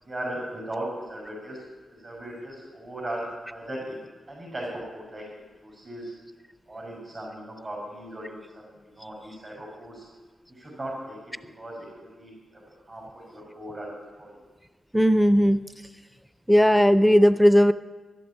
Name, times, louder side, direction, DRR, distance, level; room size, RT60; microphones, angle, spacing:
voice 1, 0.1-1.6 2.0-4.0 4.3-5.2 5.6-6.1 6.7-10.0 10.5-11.2 11.6-12.6 12.9-13.9 14.2-14.3, right 1 dB, 40° right, -5 dB, 6.2 m, -37 dB
voice 2, 14.9-15.6 16.5-17.7, equal, ahead, 14 dB, 0.6 m, -17 dB
12.0 x 11.0 x 10.0 m, 1.3 s
cardioid pair, 85°, 0 cm